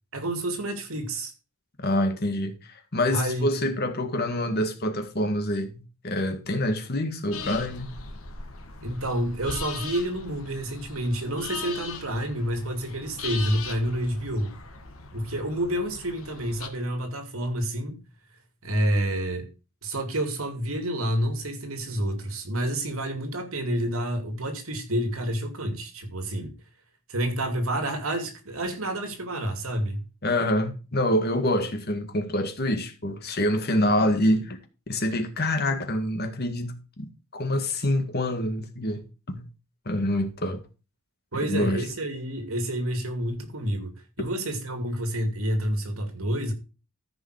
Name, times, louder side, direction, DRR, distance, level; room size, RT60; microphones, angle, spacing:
voice 1, 0.1-1.3 3.1-3.7 8.8-14.5 15.1-18.0 18.6-19.5 19.8-26.5 27.1-30.0 41.3-46.5, right 1 dB, 80° right, 2.7 m, -29 dB
voice 2, 1.8-7.9 30.2-34.6 34.9-39.4 39.8-40.6 41.5-41.8, left 1 dB, 50° left, 1.9 m, -26 dB
sound 1, 7.3-16.7, left 5 dB, 80° left, 1.8 m, -39 dB
14.0 x 5.5 x 4.9 m
head